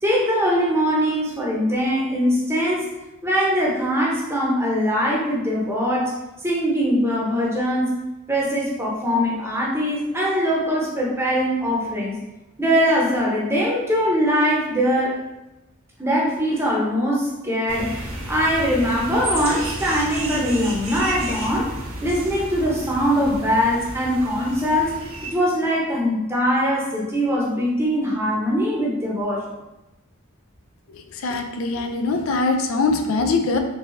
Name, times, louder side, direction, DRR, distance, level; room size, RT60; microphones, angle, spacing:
voice 1, 0.0-2.9 3.2-6.2 6.4-8.0 8.3-12.2 12.6-15.2 16.0-21.7 22.0-24.9 25.3-29.4, equal, 10° right, -4 dB, 0.7 m, -22 dB
sound 1, 17.7-25.3, right 1 dB, 65° right, 1.0 m, -32 dB
voice 2, 31.2-33.6, left 3 dB, 65° left, 5 dB, 0.4 m, -22 dB
4.0 x 3.5 x 2.5 m, 1.0 s
head